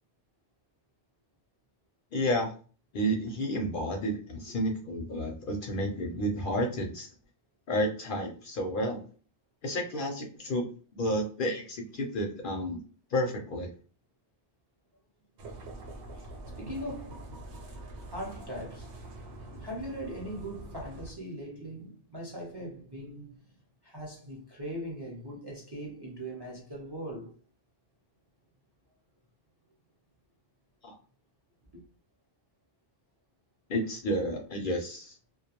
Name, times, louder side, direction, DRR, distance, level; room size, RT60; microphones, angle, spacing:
voice 1, 2.1-2.5 2.9-7.1 7.7-9.0 9.6-10.7 11.0-12.8 13.1-13.7 30.8-30.9 33.7-35.1, equal, 60° left, 0.6 m, -31 dB
sound 1, 15.4-21.1, right 1 dB, 80° right, 0.9 m, -44 dB
voice 2, 16.6-17.2 18.1-18.9 19.6-23.4 23.8-27.3 31.7-31.8, equal, 30° right, 0.5 m, -40 dB
2.2 x 2.2 x 2.8 m
omnidirectional pair, 1.1 m